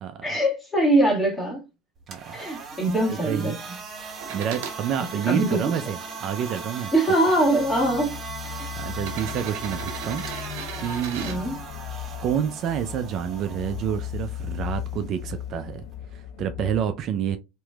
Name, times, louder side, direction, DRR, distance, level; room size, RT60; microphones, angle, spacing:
voice 1, 0.2-1.6 2.3-3.5 5.2-5.7 6.9-8.1 8.4-8.7 11.2-11.6, right 1 dB, 15° left, 1.6 m, -22 dB
sound 1, 2.0-16.0, right 5 dB, 35° right, 1.2 m, -39 dB
voice 2, 3.1-3.6 4.3-6.9 8.8-10.5 10.8-11.4 12.2-15.8 16.1-17.4, right 9 dB, 50° right, 0.4 m, -28 dB
sound 2, 4.2-4.8 5.5-6.6 7.5-7.6 8.9-11.4 13.3-13.4, right 6 dB, 75° right, 0.8 m, -38 dB
sound 3, 7.3-16.8, left 11 dB, 60° left, 0.4 m, -37 dB
3.0 x 2.9 x 2.2 m
supercardioid pair, 100°, 0 cm